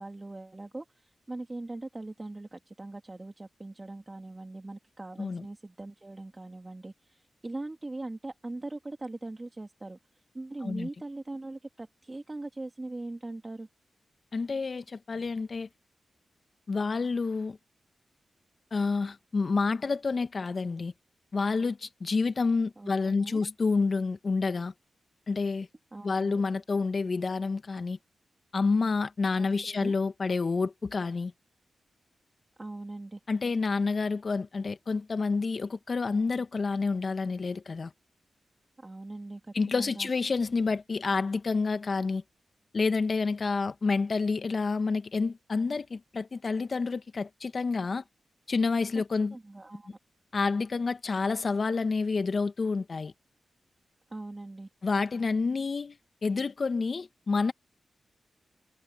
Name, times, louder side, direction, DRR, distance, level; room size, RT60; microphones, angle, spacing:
voice 1, 0.0-10.0 10.3-13.7 22.8-23.5 25.9-26.4 29.4-30.0 32.6-33.2 38.8-40.1 49.3-50.0 54.1-54.7, right 2 dB, 30° right, 2.9 m, -41 dB
voice 2, 14.3-15.7 16.7-17.6 18.7-20.9 21.3-24.7 25.3-25.7 26.0-28.0 28.5-31.3 33.3-37.9 39.5-42.2 42.7-48.0 48.5-49.3 50.3-53.1 54.8-56.0 56.2-57.5, left 4 dB, 55° left, 1.5 m, -29 dB
supercardioid pair, 40°, 0 cm